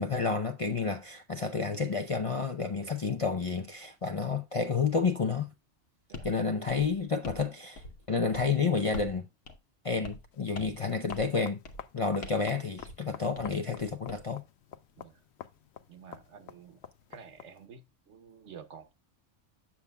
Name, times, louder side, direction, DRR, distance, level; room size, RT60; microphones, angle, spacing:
voice 1, 0.0-5.5 6.2-9.2 9.8-11.6 11.9-14.4, left 5 dB, 45° left, 0.4 m, -30 dB
sound 1, 6.1-6.3 6.7-7.5 7.8-8.1 8.3-8.5 8.9-9.2 9.5-9.6 10.0-10.3 10.5-10.8 11.1-11.3 11.6-11.9 12.2-12.5 12.8-13.0 13.3-14.2, left 2 dB, 90° left, 1.4 m, -44 dB
sound 2, 10.3-17.7, left 9 dB, 70° left, 0.8 m, -49 dB
voice 2, 15.9-16.8 17.1-18.9, right 6 dB, 75° right, 1.2 m, -50 dB
8.3 x 7.2 x 2.2 m
omnidirectional pair, 1.2 m